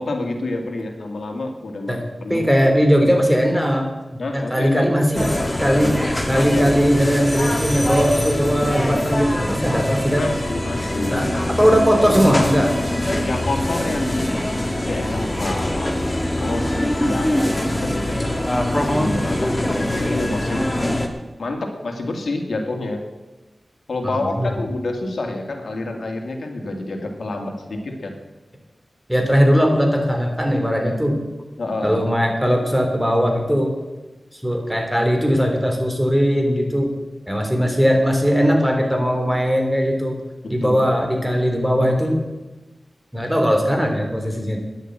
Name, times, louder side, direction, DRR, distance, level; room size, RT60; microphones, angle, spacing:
voice 1, 0.0-1.9 2.2-2.5 4.2-4.9 6.3-6.7 10.2-11.3 13.2-14.3 14.7-18.2 18.7-20.6 21.4-23.0 23.9-28.2 31.6-32.0 40.4-40.9, left 2 dB, 85° left, 3 dB, 2.1 m, -28 dB
voice 2, 2.3-3.9 4.3-5.9 6.3-10.3 11.1-12.7 24.0-24.5 29.1-31.2 31.8-33.7 34.3-36.9 37.3-40.2 40.5-42.2 43.1-44.6, equal, 5° right, 2 dB, 3.4 m, -19 dB
sound 1, 5.1-21.1, left 1 dB, 20° left, 2.0 m, -23 dB
12.0 x 10.5 x 9.0 m, 1.1 s
wide cardioid pair, 75°, 0 cm